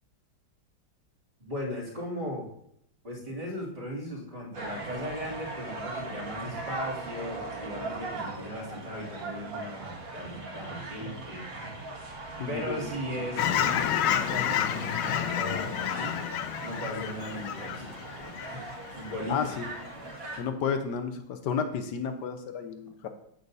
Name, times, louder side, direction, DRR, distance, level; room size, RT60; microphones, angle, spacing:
voice 1, 1.4-2.5 3.0-11.9 12.5-16.2 16.6-17.9 18.2-18.6 18.9-19.4, equal, 25° right, -6 dB, 2.6 m, -37 dB
sound 1, 4.5-20.4, right 2 dB, 70° right, 2.6 m, -39 dB
voice 2, 12.4-12.9 19.3-19.7 20.4-23.1, left 6 dB, 65° left, 7 dB, 1.2 m, -32 dB
Fowl / Chirp tweet, 13.4-19.2 19.6-19.8, left 10 dB, 80° left, 1.4 m, -30 dB
8.6 x 8.2 x 2.7 m, 0.72 s
omnidirectional pair, 2.2 m